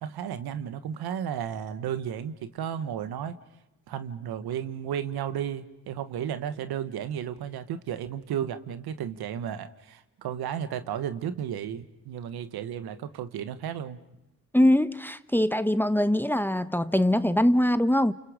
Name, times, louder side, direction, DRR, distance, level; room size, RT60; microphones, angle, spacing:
voice 1, 0.0-3.4 3.9-14.0, right 9 dB, 80° right, 1.6 m, -33 dB
voice 2, 14.5-18.1, left 1 dB, 5° left, 1.0 m, -22 dB
30.0 x 28.5 x 5.2 m
supercardioid pair, 60°, 37 cm